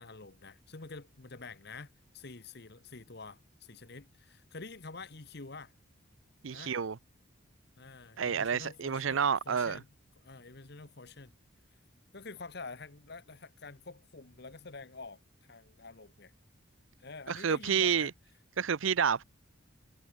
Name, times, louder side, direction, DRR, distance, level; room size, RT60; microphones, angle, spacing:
voice 1, 0.0-5.7 6.5-6.7 7.8-9.9 10.2-11.3 12.1-16.3 17.0-18.1, left 3 dB, 50° left, 1.2 m, -48 dB
voice 2, 6.4-7.0 8.2-9.8 17.3-18.1 18.6-19.2, right 7 dB, 70° right, 0.6 m, -29 dB
head